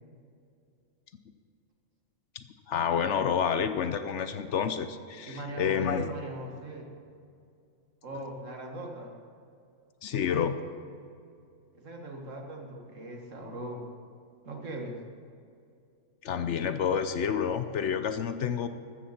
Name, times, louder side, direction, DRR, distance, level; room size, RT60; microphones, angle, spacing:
voice 1, 2.4-6.1 10.0-10.6 16.2-18.7, left 7 dB, 65° left, 10 dB, 0.9 m, -29 dB
voice 2, 5.3-6.9 8.0-9.1 11.8-13.8 14.4-15.0, right 1 dB, 65° right, 1 dB, 2.1 m, -40 dB
14.0 x 13.5 x 4.3 m, 2.4 s
omnidirectional pair, 1.4 m